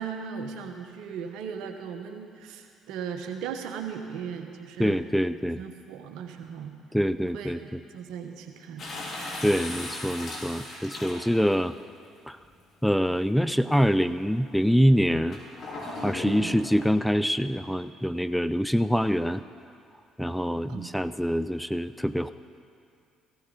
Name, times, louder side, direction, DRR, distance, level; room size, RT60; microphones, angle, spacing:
voice 1, 0.0-5.0 5.4-6.7 7.2-8.9 16.2-16.5 20.7-20.9, right 7 dB, 70° right, 6 dB, 1.2 m, -37 dB
voice 2, 4.8-5.6 6.9-7.8 9.4-11.7 12.3-12.4 12.8-15.4 16.0-19.4 20.2-22.3, equal, ahead, 13 dB, 0.4 m, -25 dB
sound 1, 8.8-11.5 12.4-12.5 15.3-16.9, left 2 dB, 55° left, 3.7 m, -37 dB
15.5 x 14.5 x 4.0 m, 2.4 s
hypercardioid pair, 60°, 0 cm